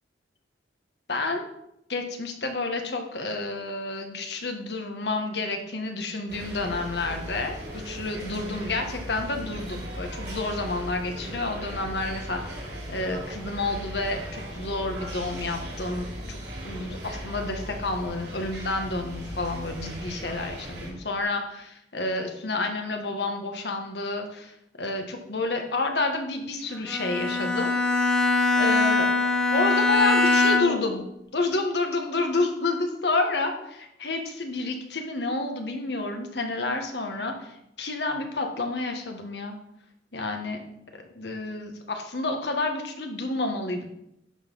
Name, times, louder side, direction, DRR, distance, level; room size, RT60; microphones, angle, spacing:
voice 1, 1.1-1.4 1.9-16.4 16.6-28.1 28.6-31.0 31.3-39.6 40.1-40.6 41.1-43.9, left 2 dB, 70° left, 4 dB, 1.4 m, -30 dB
sound 1, 6.3-20.9, equal, 80° right, 3.5 m, -37 dB
Bowed string instrument, 26.9-31.0, left 3 dB, 5° left, 1.0 m, -22 dB
11.0 x 4.0 x 5.5 m, 0.81 s
head